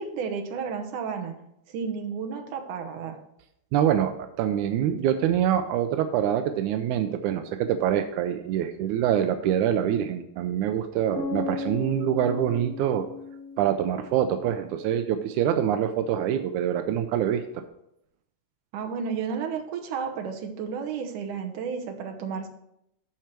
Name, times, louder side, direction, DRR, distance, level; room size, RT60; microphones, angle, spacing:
voice 1, 0.0-1.3 1.7-3.2 18.7-22.5, right 6 dB, 70° right, 4 dB, 2.3 m, -32 dB
voice 2, 3.7-4.1 4.4-13.1 13.6-17.6, right 10 dB, 90° right, 8 dB, 1.7 m, -25 dB
sound 1, 11.2-15.1, left 4 dB, 75° left, 0.8 m, -36 dB
12.0 x 4.6 x 4.5 m, 0.78 s
omnidirectional pair, 4.0 m